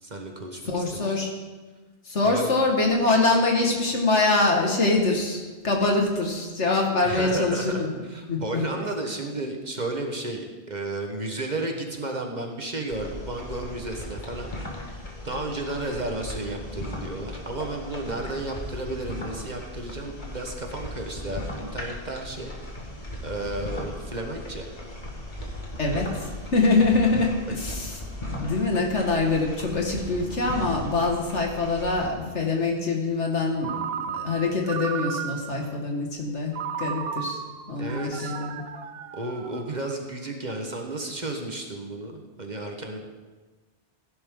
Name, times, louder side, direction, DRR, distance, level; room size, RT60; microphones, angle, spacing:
voice 1, 0.0-1.2 2.2-2.5 7.0-14.5 15.2-22.5 23.2-24.7 27.1-27.3 37.8-38.3 39.1-43.0, right 2 dB, 40° right, 2 dB, 1.5 m, -33 dB
voice 2, 0.7-1.3 2.1-8.0 8.3-8.6 15.5-15.6 25.8-27.9 28.3-37.4 37.7-38.6, left 3 dB, 80° left, 1 dB, 2.3 m, -24 dB
sound 1, 12.9-32.1, left 1 dB, 40° left, 2.1 m, -37 dB
Ringtone, 33.6-35.7 36.5-39.9, right 7 dB, 60° right, 0.8 m, -34 dB
16.5 x 10.5 x 3.9 m, 1.3 s
omnidirectional pair, 1.2 m